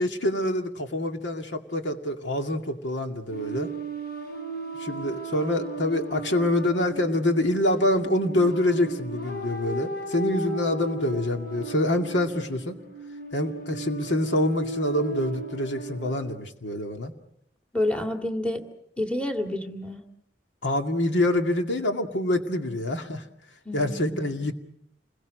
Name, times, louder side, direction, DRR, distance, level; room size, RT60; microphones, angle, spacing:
voice 1, 0.0-3.7 4.8-12.8 13.3-17.1 20.6-23.2 23.7-24.5, left 1 dB, 85° left, 5 dB, 2.2 m, -26 dB
sound 1, 3.3-16.2, right 3 dB, 55° left, 7.5 m, -36 dB
voice 2, 17.7-18.6 19.0-20.0 23.7-24.4, left 1 dB, 5° left, 4 dB, 2.2 m, -29 dB
28.5 x 22.5 x 6.5 m, 0.72 s
head